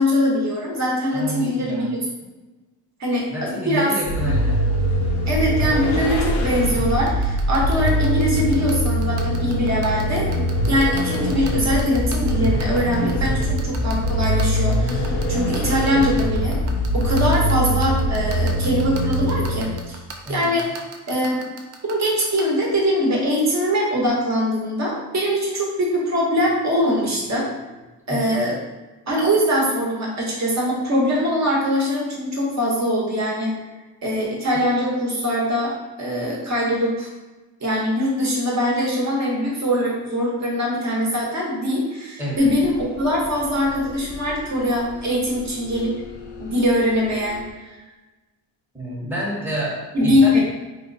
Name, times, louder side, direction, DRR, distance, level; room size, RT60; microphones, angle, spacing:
voice 1, 0.0-2.0 3.0-3.9 5.3-16.6 16.9-20.0 20.3-20.7 21.1-21.4 21.9-27.5 28.1-28.6 29.1-33.5 34.0-35.7 36.0-37.1 37.6-45.9 46.4-47.7 49.9-50.4, equal, 35° right, -2 dB, 0.9 m, -22 dB
voice 2, 1.1-1.9 3.3-4.6 13.1-13.7 20.3-20.5 28.1-28.4 34.5-34.6 42.2-42.5 48.7-50.4, right 1 dB, 5° right, -6 dB, 0.8 m, -29 dB
Vehicle, 4.1-20.0, equal, 85° left, 0.6 m, -22 dB
sound 1, 6.9-22.4, right 6 dB, 70° right, 0.6 m, -37 dB
sound 2, 42.4-47.5, left 4 dB, 40° left, 0.5 m, -40 dB
3.0 x 2.9 x 2.6 m, 1.2 s
cardioid pair, 110°, 46 cm